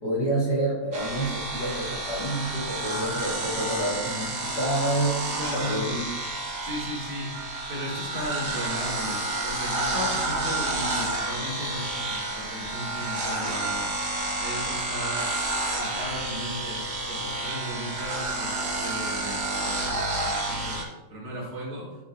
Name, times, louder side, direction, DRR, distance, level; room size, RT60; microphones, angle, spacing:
voice 1, 0.0-6.0, right 1 dB, 40° left, -6 dB, 1.6 m, -28 dB
sound 1, 0.9-20.8, right 2 dB, 80° right, 0.9 m, -30 dB
voice 2, 5.4-5.9 6.6-14.0 14.3-15.3 15.6-20.9 21.1-22.0, equal, 60° right, -6 dB, 3.8 m, -36 dB
11.5 x 5.6 x 2.7 m, 1.1 s
omnidirectional pair, 4.1 m